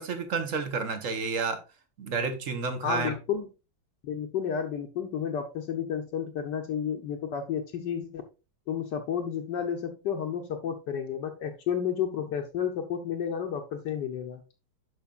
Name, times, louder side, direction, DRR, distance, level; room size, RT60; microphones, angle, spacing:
voice 1, 0.0-1.6 2.0-3.1, right 4 dB, 50° right, 1.2 m, -30 dB
voice 2, 2.8-3.5 4.0-8.2 8.7-14.4, left 8 dB, 65° left, 1.3 m, -31 dB
11.5 x 5.1 x 2.4 m
omnidirectional pair, 2.2 m